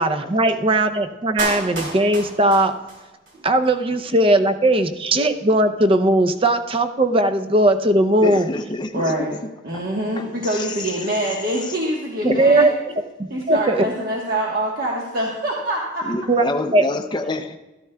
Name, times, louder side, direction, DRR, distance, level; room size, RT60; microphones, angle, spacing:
voice 1, 0.0-2.8 3.4-8.5 12.2-12.7 13.2-13.9 16.3-16.5 16.7-16.8, right 1 dB, 30° right, 8 dB, 0.5 m, -18 dB
Clapping, 1.4-3.4 3.6-3.7, right 1 dB, 65° right, 2.9 m, -31 dB
voice 2, 8.2-9.4 10.2-10.9 11.6-11.7 12.2-12.4 16.0-17.6, left 2 dB, 25° left, 6 dB, 0.4 m, -28 dB
voice 3, 8.9-9.3 9.6-12.7 13.3-16.1, right 1 dB, 50° right, -3 dB, 1.2 m, -25 dB
13.0 x 12.5 x 2.2 m, 1.1 s
head